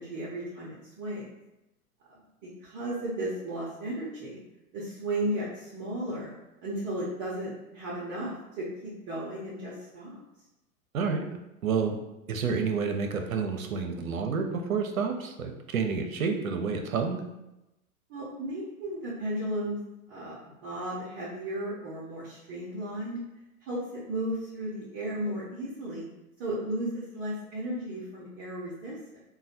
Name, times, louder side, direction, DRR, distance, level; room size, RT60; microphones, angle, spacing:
voice 1, 0.0-1.3 2.1-4.4 4.7-6.3 6.6-10.2 18.1-19.8 20.1-23.2 23.6-26.1 26.4-29.2, right 1 dB, 25° right, -7 dB, 0.7 m, -35 dB
voice 2, 11.6-12.0 12.3-17.2, right 5 dB, 65° right, 4 dB, 0.7 m, -29 dB
3.1 x 2.3 x 4.1 m, 0.94 s
figure-of-eight pair, 105°, 44 cm